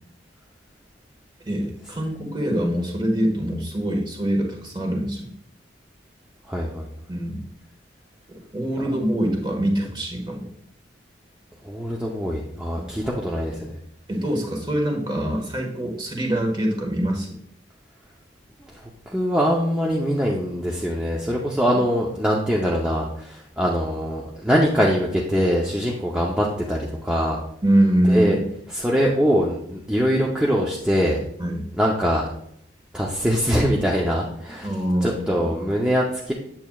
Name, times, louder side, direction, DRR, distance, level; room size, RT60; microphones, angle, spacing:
voice 1, 1.5-5.3 7.1-7.4 8.3-10.5 12.8-12.9 14.1-17.3 27.6-28.4 31.4-31.6 34.6-35.5, right 1 dB, 25° right, 1 dB, 1.3 m, -24 dB
voice 2, 6.5-6.9 11.6-13.7 18.6-18.8 19.1-27.4 28.1-28.4 28.7-31.2 31.8-32.3 32.9-34.7 35.0-36.3, equal, 5° right, -4 dB, 0.6 m, -23 dB
8.7 x 7.3 x 2.3 m, 0.69 s
head